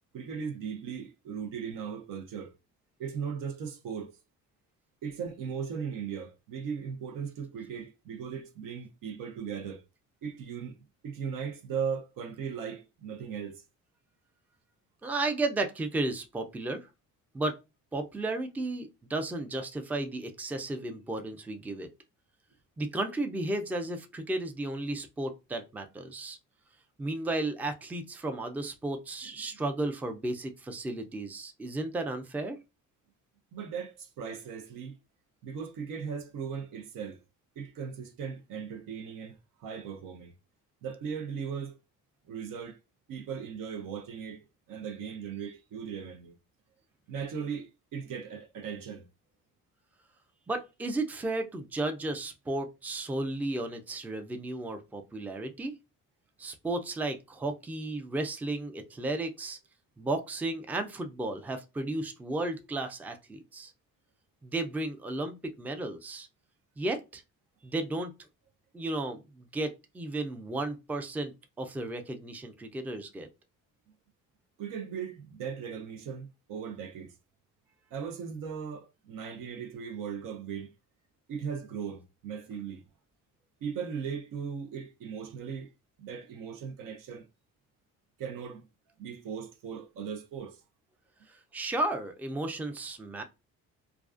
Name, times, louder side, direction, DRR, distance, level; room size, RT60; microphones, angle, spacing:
voice 1, 0.1-2.5 3.0-4.1 5.0-9.8 10.2-10.7 11.0-13.6 33.5-34.9 35.4-37.2 37.6-40.3 40.8-41.8 42.3-42.8 43.1-46.4 47.1-49.1 74.6-77.1 77.9-80.7 81.3-82.8 83.6-85.7 86.0-87.3 88.2-88.6 89.0-90.6, right 7 dB, 75° right, 0.7 m, -38 dB
voice 2, 15.0-16.9 17.3-17.6 17.9-21.9 22.8-26.4 27.0-32.6 50.5-55.7 56.4-59.6 60.0-63.7 64.4-66.3 66.8-67.2 67.6-68.1 68.7-73.3 91.3-93.2, right 2 dB, 5° right, 0.3 m, -34 dB
2.4 x 2.3 x 2.3 m
cardioid pair, 100°, 33 cm